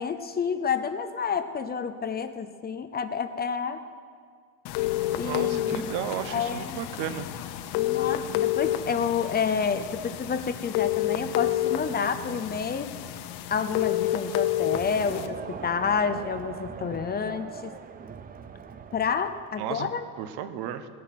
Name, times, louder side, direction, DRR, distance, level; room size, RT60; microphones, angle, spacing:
voice 1, 0.0-3.8 5.1-5.9 6.3-6.8 7.7-12.9 13.5-17.7 18.9-20.1, left 6 dB, 25° left, 9 dB, 0.6 m, -29 dB
sound 1, 4.7-15.3, left 11 dB, 85° left, 0.9 m, -29 dB
voice 2, 5.2-7.3 19.6-19.9 20.2-20.9, right 10 dB, 80° right, 11 dB, 1.0 m, -34 dB
Crowd, 14.5-19.7, right 7 dB, 25° right, 0.4 m, -41 dB
17.5 x 11.0 x 5.9 m, 2.1 s
cardioid pair, 160°, 38 cm